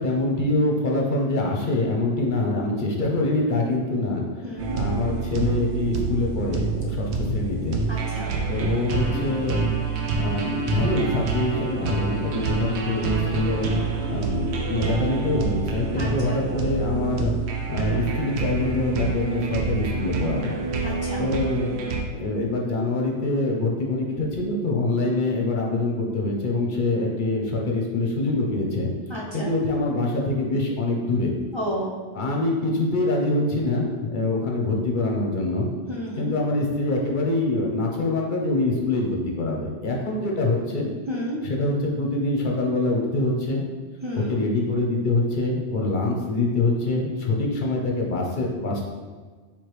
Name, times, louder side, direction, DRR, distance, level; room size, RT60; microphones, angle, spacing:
voice 1, 0.0-4.2 4.7-7.8 8.5-9.7 10.2-13.8 14.1-17.3 17.7-20.6 21.2-21.7 22.1-28.9 29.3-31.3 32.1-33.9 34.1-35.7 36.2-40.9 41.4-43.7 44.1-48.8, left 2 dB, 50° left, -1 dB, 0.8 m, -25 dB
voice 2, 4.4-4.8 7.9-8.3 12.3-12.6 16.0-16.4 20.8-21.2 29.1-29.5 31.5-32.0 35.9-36.3 41.1-41.4 44.0-44.4, equal, 40° right, -4 dB, 0.4 m, -32 dB
sound 1, 4.6-22.0, right 4 dB, 70° right, 0.9 m, -27 dB
4.9 x 3.5 x 3.1 m, 1.4 s
omnidirectional pair, 1.2 m